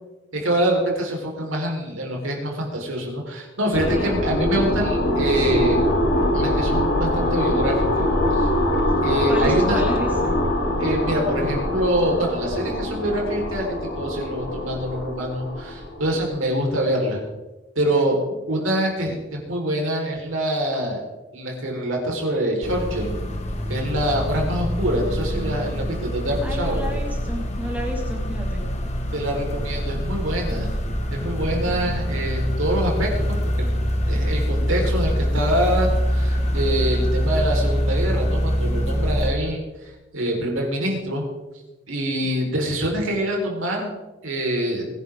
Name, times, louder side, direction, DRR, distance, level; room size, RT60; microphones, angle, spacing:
voice 1, 0.3-5.9 6.3-8.5 9.0-9.8 10.8-13.7 13.9-17.2 17.8-18.1 18.5-21.0 21.3-23.1 23.7-26.9 29.1-30.7 31.1-33.7 34.1-41.3 41.9-44.9, right 1 dB, 90° right, 0 dB, 4.4 m, -25 dB
sound 1, 3.7-16.2, left 1 dB, 85° left, 5.0 m, -23 dB
voice 2, 3.8-4.2 9.3-10.3 26.4-28.7, equal, 10° right, 0 dB, 2.0 m, -31 dB
sound 2, 22.6-39.3, equal, 35° left, 1.6 m, -24 dB
23.0 x 10.5 x 3.7 m, 1.1 s
head